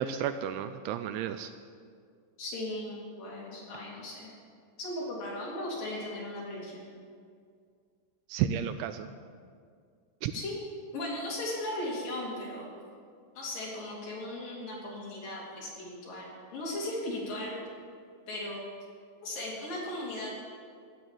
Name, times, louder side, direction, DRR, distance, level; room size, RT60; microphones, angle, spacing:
voice 1, 0.0-1.5 8.3-9.1 10.2-10.3, right 9 dB, 85° right, 10 dB, 2.8 m, -32 dB
voice 2, 2.4-4.3 4.8-6.9 10.3-10.6 10.9-12.7 13.4-17.6 18.3-18.6 19.2-20.3, left 1 dB, 50° left, -4 dB, 4.1 m, -37 dB
15.5 x 8.0 x 8.9 m, 2.2 s
omnidirectional pair, 5.5 m